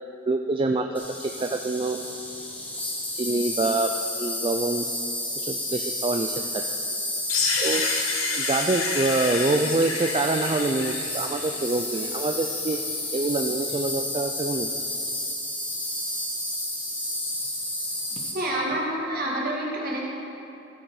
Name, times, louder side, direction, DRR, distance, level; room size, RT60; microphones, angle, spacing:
voice 1, 0.3-2.0 3.1-3.9 4.2-4.9 5.4-6.6 7.6-7.9 8.3-12.8 13.1-14.7, right 3 dB, 25° right, 4 dB, 0.3 m, -26 dB
Insect, 0.9-18.3, left 1 dB, 5° left, 1.1 m, -31 dB
sound 1, 7.3-12.1, left 4 dB, 80° left, 1.3 m, -29 dB
voice 2, 18.3-20.0, right 1 dB, 45° right, -3 dB, 2.0 m, -28 dB
15.5 x 6.4 x 4.7 m, 2.8 s
head